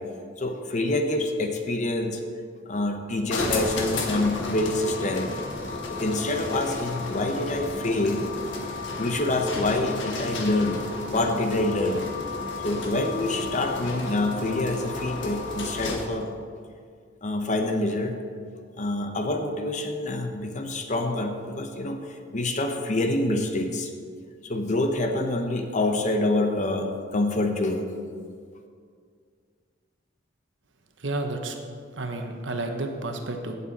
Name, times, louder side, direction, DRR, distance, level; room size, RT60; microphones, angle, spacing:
voice 1, 0.2-2.2 2.7-5.3 6.0-8.2 9.0-10.8 11.1-12.1 12.6-16.4 17.2-18.2 18.8-22.0 22.3-23.9 24.4-27.9, left 2 dB, 40° left, 5 dB, 0.9 m, -26 dB
sound 1, 3.3-16.2, left 3 dB, 70° left, 1.4 m, -32 dB
voice 2, 31.0-31.5 32.0-33.6, right 2 dB, 70° right, 4 dB, 1.2 m, -31 dB
16.5 x 7.0 x 4.2 m, 2.1 s
head